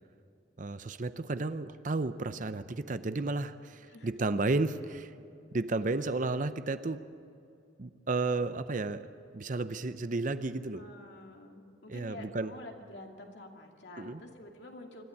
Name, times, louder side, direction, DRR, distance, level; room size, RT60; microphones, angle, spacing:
voice 1, 0.6-5.1 5.5-7.1 7.8-10.9 11.9-12.5 14.0-14.2, right 3 dB, 40° right, 12 dB, 0.6 m, -33 dB
voice 2, 10.8-15.1, left 1 dB, 65° left, 2 dB, 2.4 m, -48 dB
25.5 x 12.5 x 8.7 m, 2.6 s
head